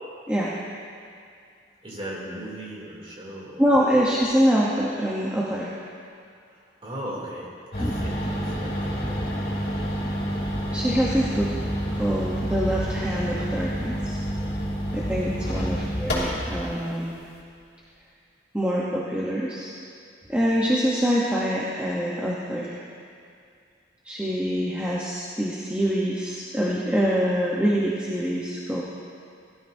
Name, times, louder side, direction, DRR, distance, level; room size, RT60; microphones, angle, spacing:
voice 1, 1.8-3.7 6.5-7.5 7.8-9.2 15.2-15.5, right 1 dB, 30° right, -5 dB, 2.8 m, -38 dB
voice 2, 3.6-5.7 7.8-7.9 10.7-11.5 11.9-14.2 14.9-17.1 18.5-19.7 20.3-22.8 24.0-28.8, equal, 5° right, -6 dB, 0.9 m, -25 dB
sound 1, 7.7-16.6, equal, 65° left, 3.0 m, -28 dB
17.0 x 13.0 x 2.7 m, 2.4 s
head